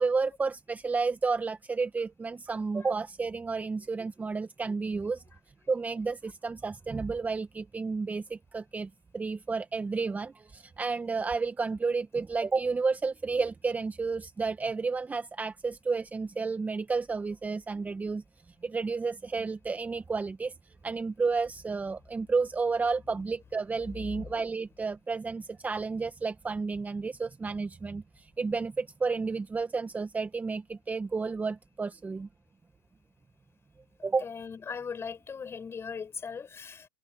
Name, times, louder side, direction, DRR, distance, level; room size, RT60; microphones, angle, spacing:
voice 1, 0.0-5.2 5.7-18.2 18.6-20.5 20.8-32.3 34.0-34.2, right 4 dB, 10° right, 1.4 m, -31 dB
voice 2, 34.2-36.9, left 6 dB, 20° left, 6.7 m, -39 dB
hypercardioid pair, 105°, 13 cm